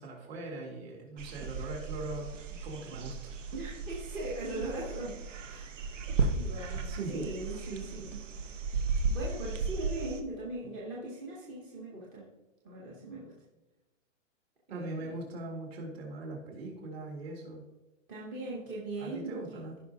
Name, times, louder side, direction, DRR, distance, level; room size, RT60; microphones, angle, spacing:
voice 1, 0.0-3.3 6.9-7.4 14.7-17.6 19.0-19.8, right 2 dB, 50° right, -1 dB, 2.9 m, -40 dB
sound 1, 1.2-10.2, right 4 dB, 70° right, 1.2 m, -35 dB
voice 2, 3.5-5.7 6.3-8.2 9.1-12.3 12.6-13.3 14.7-15.2 18.1-19.6, right 2 dB, 10° right, -4 dB, 0.8 m, -40 dB
15.0 x 5.4 x 2.7 m, 1.0 s
hypercardioid pair, 170°, 38 cm